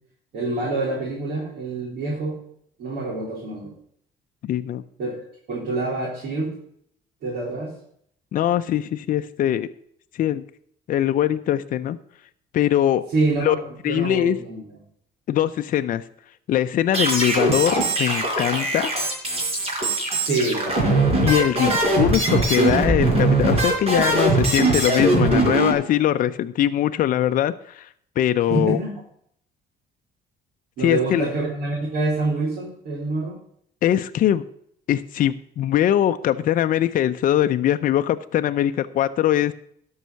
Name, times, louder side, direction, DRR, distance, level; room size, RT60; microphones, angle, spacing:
voice 1, 0.3-2.4 2.8-3.7 5.0-5.2 5.5-6.5 7.2-7.7 13.1-14.6 20.1-21.2 28.5-28.9 30.8-33.4, right 2 dB, 70° right, -7 dB, 3.6 m, -26 dB
voice 2, 4.4-4.8 8.3-9.7 10.2-10.4 10.9-12.0 12.5-13.0 13.4-13.6 13.8-14.4 15.3-16.0 16.5-18.9 21.2-27.9 28.2-28.8 30.8-31.3 33.8-34.4 34.9-39.5, left 11 dB, 55° left, 9 dB, 0.6 m, -21 dB
sound 1, 16.9-25.7, right 2 dB, 35° right, 4.5 m, -21 dB
12.5 x 5.6 x 6.9 m, 0.67 s
cardioid pair, 110°, 17 cm